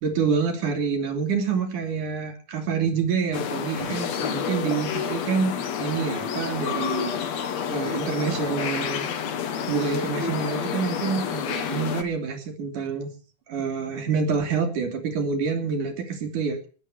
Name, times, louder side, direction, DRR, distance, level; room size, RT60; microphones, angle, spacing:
voice 1, 0.0-7.2 7.7-9.0 9.7-13.1 13.5-16.7, right 5 dB, 75° right, 5 dB, 4.5 m, -27 dB
sound 1, 3.3-12.0, left 7 dB, 60° left, 2.6 m, -29 dB
19.5 x 8.6 x 8.4 m, 0.40 s
omnidirectional pair, 3.6 m